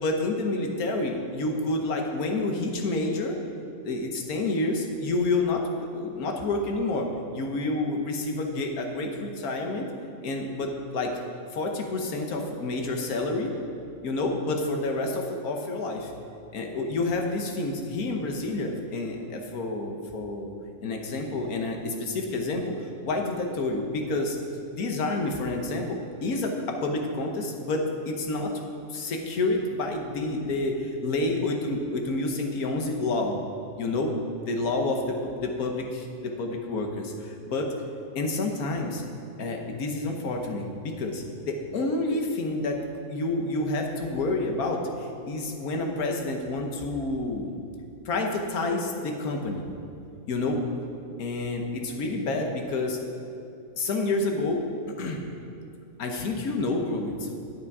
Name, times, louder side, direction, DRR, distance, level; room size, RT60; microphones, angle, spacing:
voice 1, 0.0-3.4 3.8-7.1 7.3-9.9 10.2-11.1 11.5-13.5 14.0-16.1 16.5-20.5 20.8-24.4 24.7-28.5 28.9-33.4 33.8-34.1 34.4-37.7 38.1-39.0 39.4-47.5 48.0-49.6 50.3-50.6 51.2-53.0 53.8-54.6 55.0-55.2 56.0-57.3, left 2 dB, 85° left, 2 dB, 1.5 m, -29 dB
9.7 x 8.6 x 4.8 m, 2.6 s
omnidirectional pair, 1.5 m